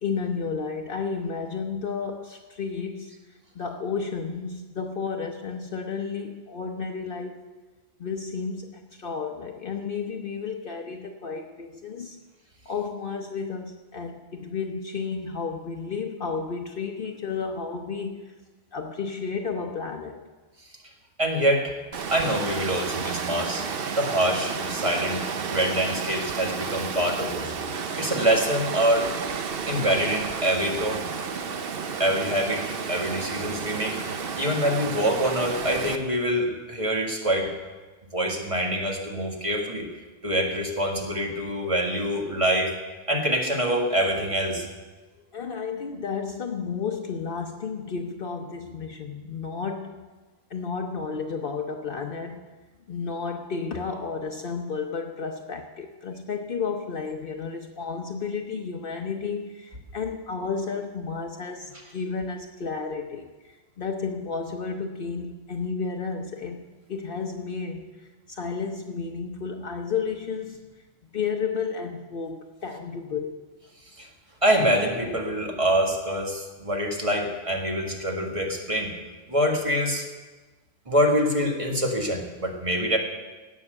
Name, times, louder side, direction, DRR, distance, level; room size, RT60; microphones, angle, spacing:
voice 1, 0.0-3.1 3.5-7.4 8.0-12.2 12.7-18.3 18.7-20.2 45.3-50.1 50.5-52.5 52.9-66.6 66.9-70.7 71.1-73.4, left 5 dB, 60° left, 3 dB, 1.0 m, -32 dB
voice 2, 21.2-21.7 22.1-23.6 24.0-25.2 25.5-27.5 28.0-29.1 29.7-31.0 32.0-34.0 34.4-37.5 38.1-39.9 40.2-42.7 43.1-44.7 74.0-74.1 74.4-78.9 79.3-80.0 80.9-83.0, equal, 30° right, 0 dB, 1.9 m, -25 dB
Water, 21.9-36.0, right 5 dB, 65° right, 1.0 m, -32 dB
17.0 x 6.2 x 7.9 m, 1.3 s
omnidirectional pair, 1.1 m